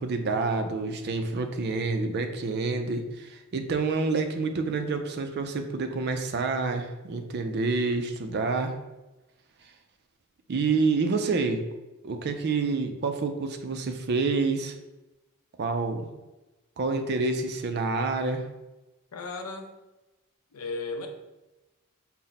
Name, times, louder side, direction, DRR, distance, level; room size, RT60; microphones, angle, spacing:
voice 1, 0.0-8.8 10.5-11.6 12.0-14.7 15.6-16.1 16.8-18.4, right 3 dB, 50° right, 6 dB, 0.4 m, -28 dB
voice 2, 19.1-19.7 20.5-21.1, left 3 dB, 85° left, 5 dB, 0.5 m, -35 dB
4.1 x 2.1 x 4.0 m, 1.0 s
head